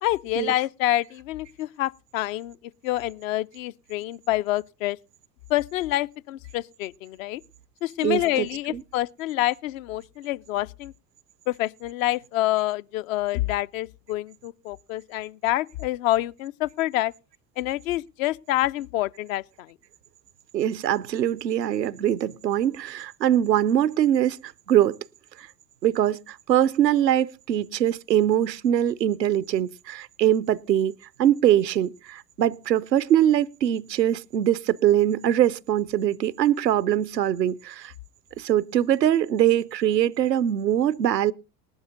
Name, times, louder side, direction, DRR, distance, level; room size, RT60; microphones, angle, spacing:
voice 1, 0.0-2.6 2.8-5.0 5.5-7.4 7.8-10.9 11.5-17.1 17.6-19.7, left 15 dB, 55° left, 0.5 m, -27 dB
voice 2, 8.0-8.8 20.5-25.0 25.4-25.5 25.8-37.9 38.4-41.3, right 11 dB, 85° right, 0.6 m, -23 dB
19.5 x 12.0 x 2.5 m
figure-of-eight pair, 70°, 48 cm